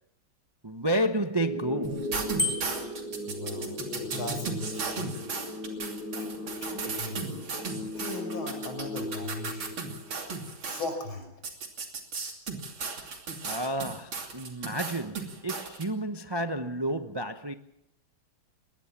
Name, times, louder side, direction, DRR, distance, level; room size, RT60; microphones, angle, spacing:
voice 1, 0.6-2.2 13.4-17.5, right 1 dB, 35° right, 0.3 m, -31 dB
sound 1, 1.4-10.4, left 1 dB, 50° left, 4.8 m, -37 dB
sound 2, 1.8-10.9 11.4-15.8, right 4 dB, 85° right, 3.6 m, -35 dB
Bicycle bell, 2.4-3.0, left 2 dB, 20° left, 4.5 m, -30 dB
voice 2, 3.3-3.8 4.1-5.1 6.1-6.3 6.6-7.4 7.8-9.8 10.6-11.3, left 2 dB, 90° left, 6.2 m, -38 dB
21.5 x 19.0 x 7.3 m
omnidirectional pair, 2.2 m